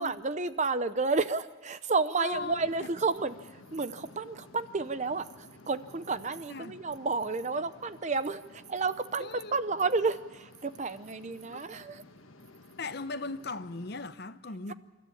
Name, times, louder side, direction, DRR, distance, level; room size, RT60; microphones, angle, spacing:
voice 1, 0.0-12.0, right 4 dB, 35° right, 0.6 m, -31 dB
voice 2, 2.2-2.9 6.5-6.7 9.2-9.5 11.5-11.7 12.8-14.7, left 3 dB, 50° left, 0.8 m, -38 dB
sound 1, 2.3-14.1, left 2 dB, 85° left, 1.5 m, -54 dB
28.0 x 13.0 x 8.5 m
head